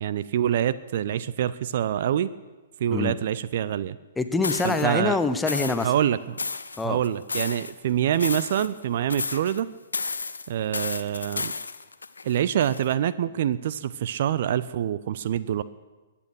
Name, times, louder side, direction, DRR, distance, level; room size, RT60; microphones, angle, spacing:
voice 1, 0.0-2.3 2.8-4.0 4.6-5.2 5.8-6.4 6.8-9.7 10.5-11.5 12.2-15.6, right 10 dB, 50° right, 17 dB, 0.4 m, -25 dB
voice 2, 4.2-5.9 6.8-7.0, left 3 dB, 10° left, 10 dB, 0.8 m, -25 dB
sound 1, 4.4-4.8 5.5-6.0 6.4-7.7 8.1-8.8 9.1-9.6 9.9-12.9, left 4 dB, 70° left, 0.7 m, -32 dB
22.0 x 8.6 x 6.3 m, 1.3 s
figure-of-eight pair, 115°, 0 cm